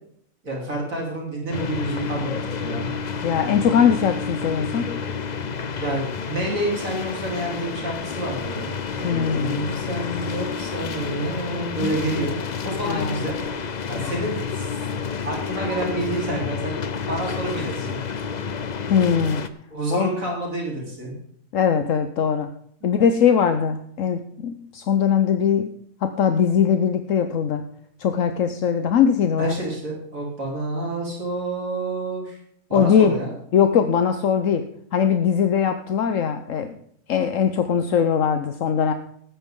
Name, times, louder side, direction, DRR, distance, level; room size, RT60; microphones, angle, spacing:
voice 1, 0.4-2.9 5.8-12.4 12.6-13.4 13.9-14.8 15.2-18.0 19.7-21.1 22.8-22.9 29.4-32.4 32.7-33.3, right 1 dB, 75° right, -2 dB, 4.4 m, -29 dB
sound 1, 1.5-19.5, left 6 dB, 40° left, 0.7 m, -30 dB
voice 2, 3.2-4.8 9.0-9.7 11.8-12.0 12.9-13.2 14.0-14.1 18.9-19.4 19.9-20.1 21.5-22.5 22.8-27.6 28.0-29.5 32.7-33.2 33.5-34.6 34.9-36.8 37.1-38.9, left 7 dB, 70° left, 8 dB, 1.2 m, -21 dB
18.0 x 9.8 x 3.8 m, 0.66 s
omnidirectional pair, 1.4 m